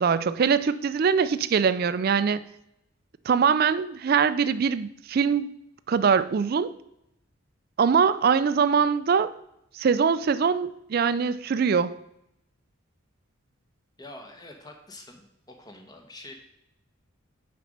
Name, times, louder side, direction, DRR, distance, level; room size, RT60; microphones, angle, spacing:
voice 1, 0.0-2.4 3.3-5.5 5.9-6.7 7.8-9.3 9.7-11.9, right 6 dB, 45° right, 0.3 m, -23 dB
voice 2, 14.0-16.4, left 2 dB, 20° left, 1.0 m, -46 dB
6.6 x 5.1 x 6.4 m
head